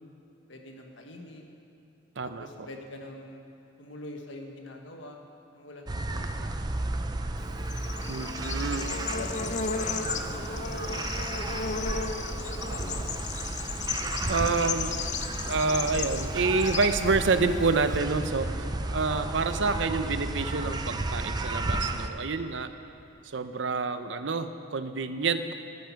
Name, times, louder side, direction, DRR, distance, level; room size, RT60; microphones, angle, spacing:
voice 1, 0.5-1.5 2.2-5.2 5.5-6.5 8.7-13.0 14.2-15.5 18.4-18.8 25.5-25.6, left 2 dB, 80° left, 2 dB, 1.4 m, -45 dB
voice 2, 2.2-2.5 8.1-8.9 14.3-14.9 15.5-18.5 18.9-22.7 23.2-25.5, right 4 dB, 70° right, 10 dB, 0.6 m, -28 dB
sound 1, 5.9-22.1, right 2 dB, 20° right, 0.5 m, -33 dB
Bird / Insect, 7.4-18.0, left 5 dB, 40° left, 0.5 m, -35 dB
12.5 x 10.5 x 5.8 m, 2.9 s
head